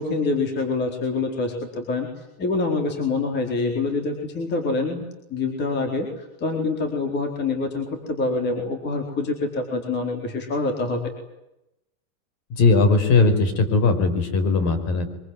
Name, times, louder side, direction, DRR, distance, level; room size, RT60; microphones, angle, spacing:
voice 1, 0.0-2.1 2.4-5.1 5.3-11.0, left 3 dB, 25° left, 4 dB, 4.2 m, -26 dB
voice 2, 12.5-15.1, left 3 dB, 40° left, 11 dB, 5.4 m, -19 dB
24.5 x 24.0 x 9.6 m, 0.86 s
supercardioid pair, 165°, 42 cm